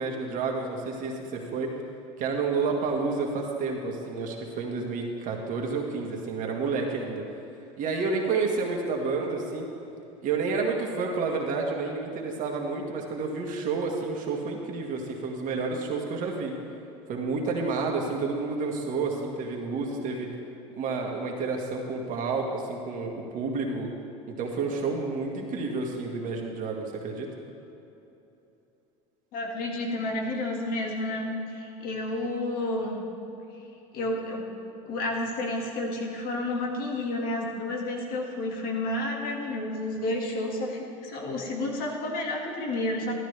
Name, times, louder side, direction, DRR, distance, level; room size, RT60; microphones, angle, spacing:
voice 1, 0.0-1.7 2.2-7.2 7.8-9.7 10.2-16.5 17.1-20.3 20.7-23.9 24.4-27.3, right 4 dB, 50° right, 0 dB, 1.9 m, -30 dB
voice 2, 29.3-33.0 33.9-34.5 34.9-43.1, left 2 dB, 60° left, 0 dB, 2.0 m, -30 dB
12.5 x 12.0 x 3.4 m, 3.0 s
supercardioid pair, 95°, 17 cm